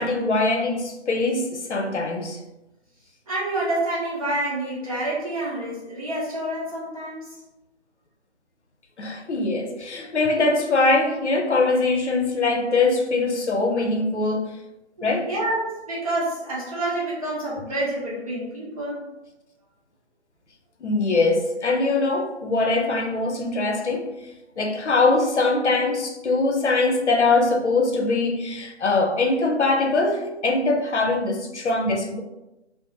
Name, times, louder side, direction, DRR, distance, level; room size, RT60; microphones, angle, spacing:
voice 1, 0.0-2.4 9.0-14.5 15.0-15.3 20.8-24.1 24.6-32.2, left 3 dB, 80° left, 0.6 m, -22 dB
voice 2, 3.3-7.3 15.0-19.0, right 1 dB, 30° right, 0.8 m, -28 dB
2.6 x 2.0 x 2.8 m
figure-of-eight pair, 150°, 34 cm